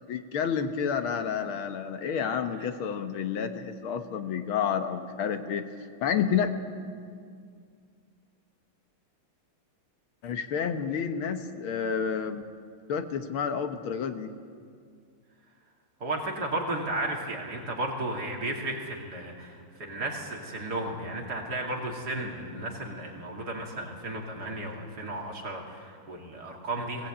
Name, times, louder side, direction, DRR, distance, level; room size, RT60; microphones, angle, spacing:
voice 1, 0.1-5.7 6.0-6.5 10.2-12.4 12.9-14.3, left 7 dB, 75° left, 8 dB, 1.9 m, -30 dB
voice 2, 16.0-27.1, right 1 dB, 50° right, 0 dB, 3.2 m, -34 dB
21.0 x 17.5 x 8.7 m, 2.2 s
omnidirectional pair, 2.3 m